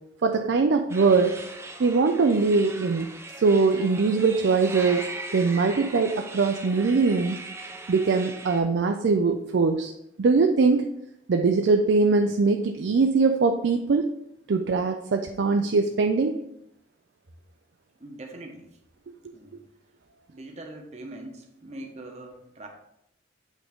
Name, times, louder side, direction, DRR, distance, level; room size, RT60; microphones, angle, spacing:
voice 1, 0.2-1.4 1.8-3.1 3.4-5.1 5.3-7.4 7.9-9.9 10.2-10.8 11.3-14.1 14.5-16.3, right 4 dB, 70° right, 5 dB, 0.4 m, -22 dB
sound 1, 0.9-8.6, right 2 dB, 15° right, 0.6 m, -39 dB
voice 2, 18.0-18.8 19.3-19.6 20.3-22.7, right 1 dB, 35° right, 3 dB, 0.9 m, -42 dB
8.2 x 3.7 x 3.6 m, 0.78 s
head